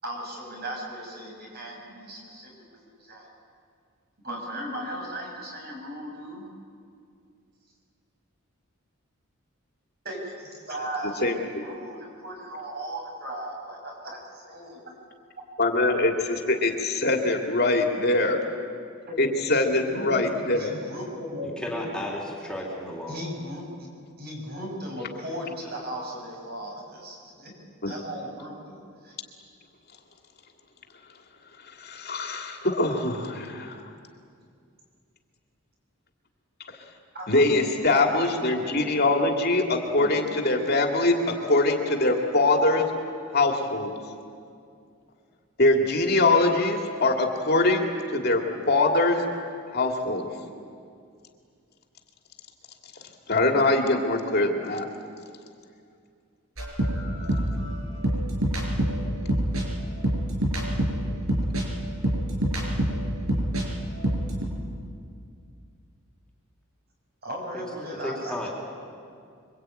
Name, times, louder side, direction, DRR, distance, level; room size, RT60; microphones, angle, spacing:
voice 1, 0.0-3.3 4.2-6.5 10.0-11.2 11.6-15.1 19.0-21.9 23.1-23.9 24.2-27.5 27.8-29.1 37.1-37.3 37.9-38.3 38.6-38.9 40.0-40.1 67.2-68.5, equal, 45° right, -1 dB, 7.9 m, -37 dB
voice 2, 15.6-18.4 19.2-20.7 27.8-27.9 31.8-33.8 37.3-42.9 43.3-43.9 45.6-49.2 49.7-50.3 53.3-54.9, left 2 dB, 50° left, 2 dB, 2.6 m, -23 dB
voice 3, 21.6-23.2 68.0-68.5, left 1 dB, 5° left, -2 dB, 3.6 m, -33 dB
sound 1, 56.6-63.6 63.9-64.4, right 1 dB, 85° right, 6.0 m, -26 dB
26.0 x 24.5 x 9.2 m, 2.3 s
head